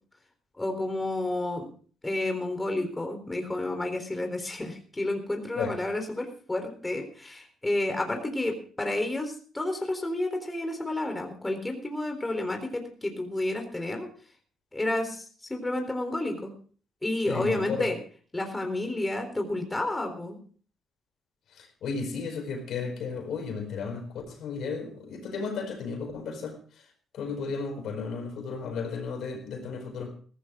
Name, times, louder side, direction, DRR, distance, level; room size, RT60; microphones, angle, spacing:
voice 1, 0.6-1.7 2.0-14.1 14.7-16.5 17.0-18.0 18.3-20.4, left 2 dB, 15° left, 4 dB, 3.7 m, -30 dB
voice 2, 17.2-17.9 21.6-26.6 27.1-30.1, left 5 dB, 70° left, 5 dB, 4.6 m, -34 dB
16.5 x 14.5 x 3.8 m, 0.43 s
cardioid pair, 90°, 0 cm